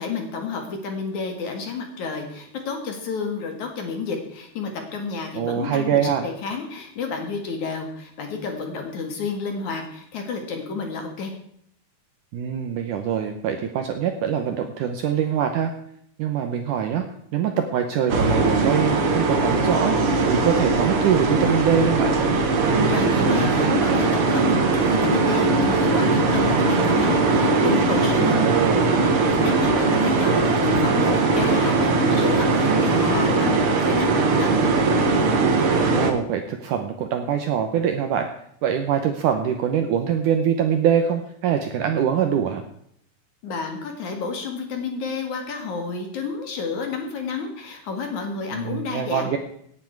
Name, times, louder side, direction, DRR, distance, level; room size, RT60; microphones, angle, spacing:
voice 1, 0.0-11.3 22.9-28.4 29.2-34.5 43.4-49.3, left 5 dB, 55° left, 3 dB, 2.9 m, -30 dB
voice 2, 5.3-6.3 12.3-15.7 16.2-17.1 17.3-22.2 28.2-29.0 35.8-38.3 38.6-42.6 48.5-49.4, right 8 dB, 70° right, 6 dB, 2.1 m, -24 dB
sound 1, 18.1-36.1, right 3 dB, 55° right, 1.7 m, -20 dB
17.5 x 9.5 x 4.7 m, 0.68 s
omnidirectional pair, 4.5 m